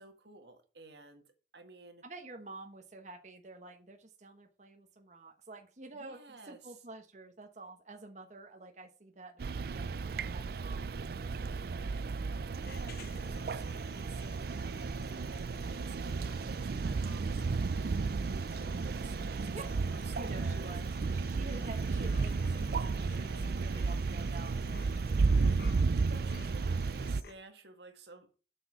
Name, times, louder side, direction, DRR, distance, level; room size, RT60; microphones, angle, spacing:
voice 1, 0.0-2.0 5.9-6.8 12.6-20.8 25.4-28.4, right 3 dB, 75° right, 1.8 m, -53 dB
voice 2, 2.0-6.2 6.5-11.6 19.5-19.8 20.2-20.8 21.1-25.6 26.7-26.8, right 2 dB, 40° right, 1.2 m, -49 dB
sound 1, 9.4-27.2, right 4 dB, 60° right, 0.4 m, -33 dB
sound 2, 12.6-27.3, left 4 dB, 60° left, 1.3 m, -55 dB
8.2 x 6.4 x 6.0 m
head